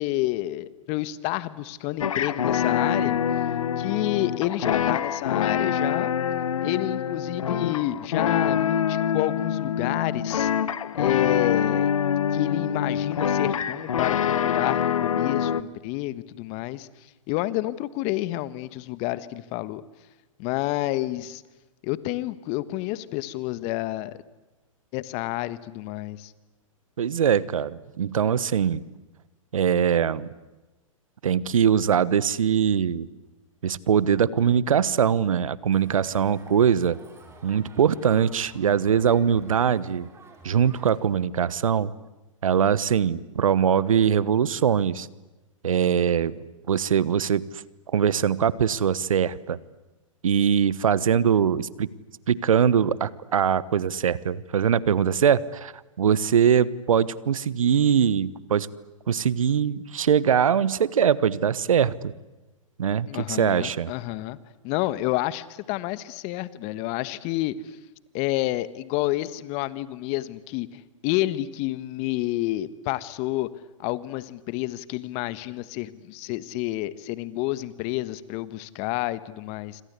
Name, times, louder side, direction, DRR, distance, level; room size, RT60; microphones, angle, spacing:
voice 1, 0.0-3.2 3.8-6.1 6.6-10.5 10.9-11.9 12.3-16.9 17.3-19.8 20.4-21.4 21.8-24.2 24.9-26.3 63.1-64.4 64.6-67.6 68.1-73.5 73.8-79.8, left 17 dB, 40° left, 16 dB, 1.4 m, -29 dB
sound 1, 2.0-15.6, left 8 dB, 75° left, 1.2 m, -25 dB
voice 2, 27.0-28.8 29.5-30.3 31.2-33.1 33.6-37.0 37.4-40.1 40.4-41.9 42.4-45.1 45.6-46.4 46.7-47.4 47.9-49.6 50.2-51.9 52.3-55.7 56.0-58.7 59.1-62.1 62.8-63.9, right 8 dB, 75° right, 20 dB, 1.1 m, -22 dB
Crowd, 35.7-41.0, right 3 dB, 15° right, 5.2 m, -51 dB
26.5 x 26.5 x 8.3 m, 1.1 s
hypercardioid pair, 115°, 17 cm